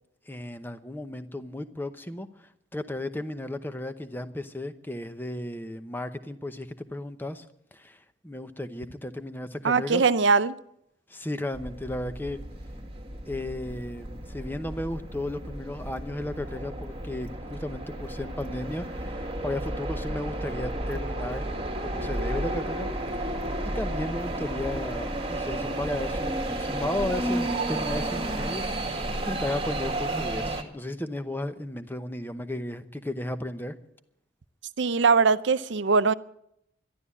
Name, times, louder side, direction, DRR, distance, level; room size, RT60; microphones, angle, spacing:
voice 1, 0.3-2.3 2.7-7.4 7.7-10.0 11.1-12.4 13.3-21.5 21.8-22.9 23.2-23.3 23.7-28.7 29.2-33.8, left 1 dB, 10° left, 0.8 m, -34 dB
voice 2, 9.6-10.5 34.8-36.1, right 4 dB, 70° right, 0.6 m, -21 dB
sound 1, 11.5-30.6, right 1 dB, 30° right, 1.9 m, -32 dB
12.5 x 12.0 x 8.4 m
head